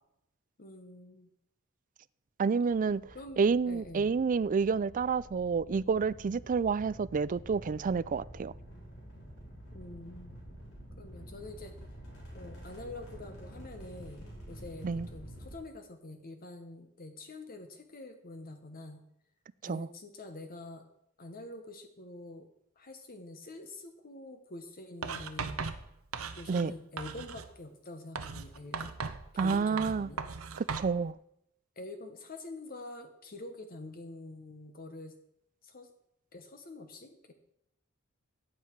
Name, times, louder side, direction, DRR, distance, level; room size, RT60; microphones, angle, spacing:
voice 1, 0.6-1.3 3.1-4.1 9.7-10.4 11.0-11.7 12.3-19.0 19.6-20.8 21.2-22.5 22.8-25.8 26.3-28.9 29.3-30.2 31.8-35.1 35.6-35.9 36.3-37.3, left 2 dB, 45° left, 1.1 m, -46 dB
voice 2, 2.4-3.0 3.4-8.5 14.8-15.1 19.6-19.9 26.5-26.7 29.4-30.1 30.6-31.2, right 5 dB, 40° right, 0.4 m, -29 dB
sound 1, 2.7-15.5, equal, 80° left, 4.6 m, -49 dB
Writing, 25.0-26.7 27.0-27.5 28.2-30.9, right 5 dB, 75° right, 0.9 m, -38 dB
15.0 x 9.3 x 4.6 m
head